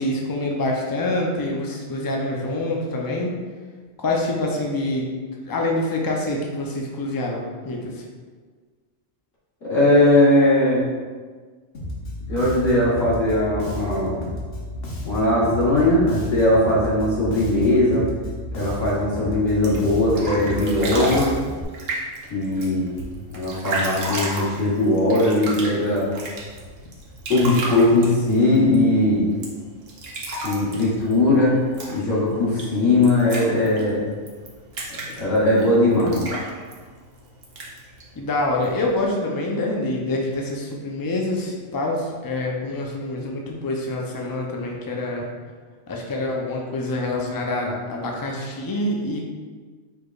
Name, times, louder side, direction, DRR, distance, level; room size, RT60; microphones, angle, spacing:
voice 1, 0.0-3.4 4.0-5.1 5.5-8.0 38.2-45.3 45.9-49.2, left 2 dB, 35° left, -1 dB, 0.3 m, -26 dB
voice 2, 9.6-10.8 12.3-14.1 15.1-18.1 18.5-21.3 22.3-22.9 23.3-26.1 27.3-29.3 30.4-31.6 31.9-34.0 35.2-36.2, left 1 dB, 75° left, -9 dB, 1.8 m, -19 dB
Bass guitar, 11.7-21.6, left 1 dB, 50° left, 1.0 m, -32 dB
sound 1, 19.5-39.1, right 1 dB, 55° right, 1.0 m, -34 dB
4.7 x 4.5 x 2.4 m, 1.5 s
omnidirectional pair, 1.3 m